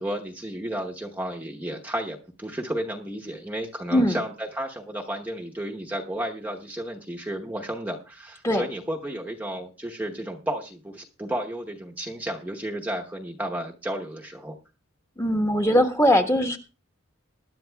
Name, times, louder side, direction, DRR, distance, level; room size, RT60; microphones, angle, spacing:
voice 1, 0.0-14.6, right 1 dB, 10° right, 0 dB, 0.9 m, -32 dB
voice 2, 15.2-16.6, equal, 15° left, 4 dB, 1.2 m, -20 dB
20.5 x 11.0 x 2.3 m, 0.31 s
head